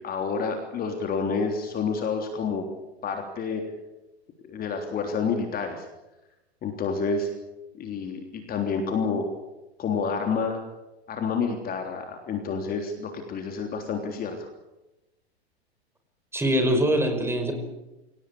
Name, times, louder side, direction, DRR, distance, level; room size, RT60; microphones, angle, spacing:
voice 1, 0.0-2.6 3.0-3.6 4.4-5.9 6.6-7.3 7.7-9.3 9.8-10.6 11.1-14.5, left 5 dB, 25° left, 4 dB, 3.5 m, -29 dB
voice 2, 16.3-17.5, right 1 dB, 5° right, 5 dB, 5.5 m, -23 dB
27.5 x 18.0 x 8.6 m, 0.99 s
hypercardioid pair, 105°, 33 cm